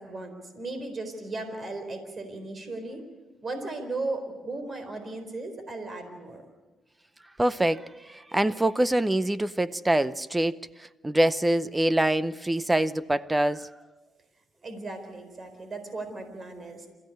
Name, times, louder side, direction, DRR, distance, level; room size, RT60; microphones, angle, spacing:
voice 1, 0.0-3.0 3.4-6.4 14.6-16.9, right 2 dB, 40° right, 4.2 m, -36 dB
voice 2, 7.4-13.7, right 1 dB, 15° right, 0.7 m, -25 dB
28.0 x 15.5 x 9.5 m
cardioid pair, 90°, 0 cm